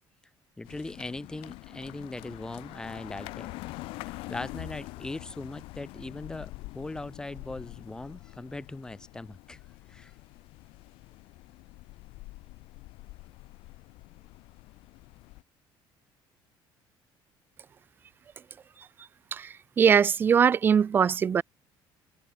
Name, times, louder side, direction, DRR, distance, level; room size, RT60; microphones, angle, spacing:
sound 1, 0.6-15.4, left 21 dB, 90° left, 1.6 m, -45 dB
voice 1, 0.6-3.5 4.3-9.6 9.9-10.1, left 2 dB, 10° left, 1.2 m, -39 dB
voice 2, 19.8-21.4, right 7 dB, 25° right, 0.3 m, -21 dB
cardioid pair, 170°, 9 cm